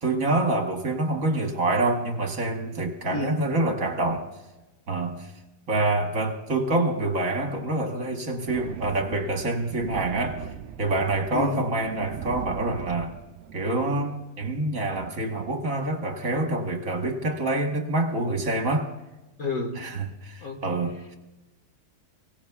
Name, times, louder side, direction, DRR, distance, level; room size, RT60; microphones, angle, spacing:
voice 1, 0.0-4.3 4.9-5.3 5.7-10.5 10.8-13.1 13.5-18.9 19.8-21.2, right 2 dB, 50° right, 1.7 m, -26 dB
voice 2, 3.1-3.4 11.3-11.6 19.4-19.8 20.4-20.8, left 2 dB, 50° left, 1.7 m, -30 dB
Thunder, 8.5-13.6, right 9 dB, 75° right, 0.6 m, -39 dB
24.0 x 17.5 x 2.3 m
omnidirectional pair, 1.9 m